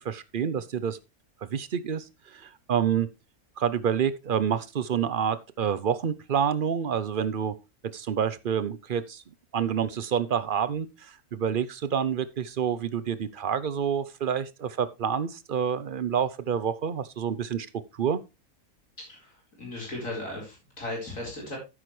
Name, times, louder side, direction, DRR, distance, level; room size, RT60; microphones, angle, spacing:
voice 1, 0.0-1.0 1.5-3.1 3.6-7.5 7.9-9.2 9.5-17.7 17.9-18.2, right 8 dB, 50° right, 0.6 m, -28 dB
voice 2, 19.1-21.6, left 1 dB, 60° left, 5.0 m, -36 dB
9.7 x 9.5 x 3.2 m
omnidirectional pair, 1.5 m